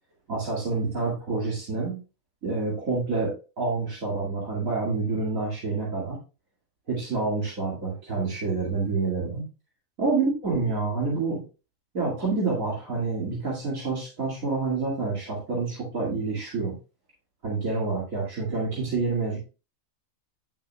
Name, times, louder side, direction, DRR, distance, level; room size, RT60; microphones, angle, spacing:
voice 1, 0.3-2.0 2.4-6.2 6.9-9.4 10.0-11.4 11.9-16.7 17.4-19.4, right 3 dB, 90° right, -5 dB, 2.7 m, -28 dB
10.0 x 6.6 x 2.3 m, 0.31 s
omnidirectional pair, 1.4 m